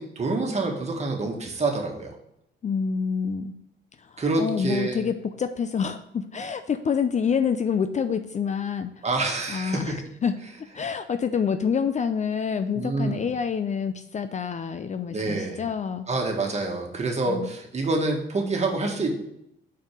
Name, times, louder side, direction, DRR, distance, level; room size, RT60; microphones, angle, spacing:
voice 1, 0.0-2.1 4.2-5.0 9.0-10.0 12.8-13.2 15.1-15.6 16.1-19.1, right 3 dB, 35° right, 1 dB, 1.7 m, -27 dB
voice 2, 2.6-3.5 4.0-9.0 9.5-10.0 10.2-10.4 10.7-16.1 17.3-17.5, left 6 dB, 35° left, 10 dB, 0.5 m, -27 dB
5.1 x 4.6 x 6.1 m, 0.77 s
cardioid pair, 90°, 20 cm